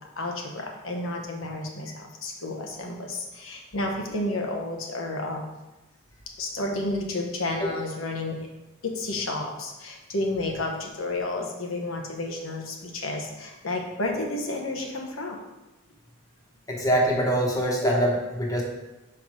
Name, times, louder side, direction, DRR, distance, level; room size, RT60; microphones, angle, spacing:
voice 1, 0.2-5.4 6.4-8.4 8.8-15.4, left 2 dB, 80° left, 1 dB, 1.0 m, -31 dB
voice 2, 16.7-18.6, right 1 dB, 15° left, -2 dB, 1.1 m, -24 dB
5.5 x 4.6 x 4.8 m, 1.0 s
head